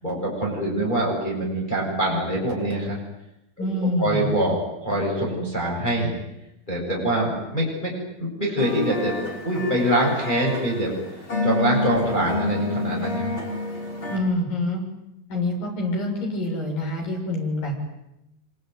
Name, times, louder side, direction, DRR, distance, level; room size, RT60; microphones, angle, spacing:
voice 1, 0.0-3.0 3.6-3.7 4.0-6.1 6.7-7.9 8.2-9.1 9.4-10.9 11.4-13.3, right 1 dB, 10° left, -3 dB, 7.9 m, -24 dB
voice 2, 3.6-4.2 14.1-14.8 15.3-17.8, left 1 dB, 65° left, 1 dB, 8.9 m, -26 dB
sound 1, 8.6-14.2, left 2 dB, 30° left, 5.5 m, -28 dB
26.0 x 24.5 x 9.5 m, 0.86 s
omnidirectional pair, 4.3 m